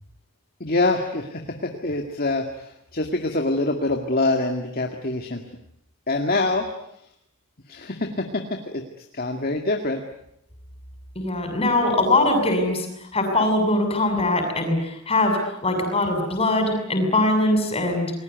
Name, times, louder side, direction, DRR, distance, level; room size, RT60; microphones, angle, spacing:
voice 1, 0.6-5.4 6.1-6.6 7.7-8.4 8.7-10.0, left 2 dB, 45° left, 3 dB, 2.1 m, -25 dB
voice 2, 11.1-12.9 13.1-18.1, left 2 dB, 25° left, 5 dB, 6.8 m, -22 dB
29.0 x 21.0 x 9.4 m, 0.77 s
head